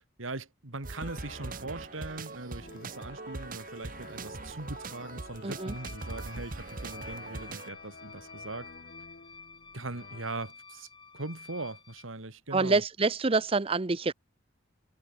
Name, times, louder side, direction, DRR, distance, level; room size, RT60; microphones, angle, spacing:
voice 1, 0.2-8.7 9.7-10.9 11.1-12.8, right 2 dB, 90° right, 2.5 m, -40 dB
sound 1, 0.8-7.7, right 3 dB, 45° right, 1.1 m, -41 dB
sound 2, 1.0-10.2, left 4 dB, 50° left, 1.3 m, -52 dB
voice 2, 5.4-5.7 12.5-14.1, right 3 dB, 30° right, 0.6 m, -27 dB
sound 3, 5.7-12.0, left 4 dB, 25° left, 7.2 m, -50 dB
head